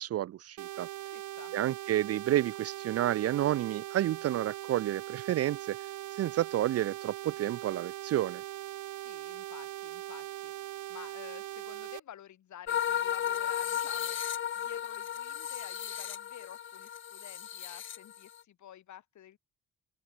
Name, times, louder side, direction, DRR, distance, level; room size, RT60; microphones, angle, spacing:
voice 1, 0.0-0.9 1.5-5.8 6.2-8.4, right 13 dB, 55° right, 0.5 m, -30 dB
sound 1, 0.6-12.0, right 15 dB, 80° right, 1.2 m, -41 dB
voice 2, 1.1-1.6 9.0-14.2 14.6-19.4, left 11 dB, 70° left, 6.1 m, -51 dB
sound 2, 12.7-18.4, left 9 dB, 40° left, 0.6 m, -34 dB
open air
cardioid pair, 90°, 30 cm